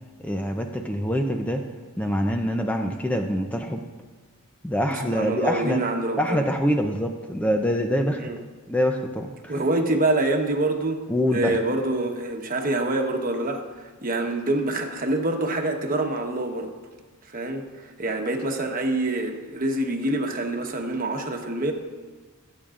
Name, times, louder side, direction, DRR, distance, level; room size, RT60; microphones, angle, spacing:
voice 1, 0.2-1.6 2.0-3.8 4.6-5.8 6.2-8.2 8.7-9.5 11.1-11.6, equal, 5° left, 3 dB, 0.5 m, -25 dB
voice 2, 4.9-6.5 8.2-8.4 9.5-11.0 11.3-16.7 17.3-21.7, right 2 dB, 40° right, 3 dB, 1.1 m, -26 dB
24.0 x 8.6 x 2.5 m, 1.3 s
head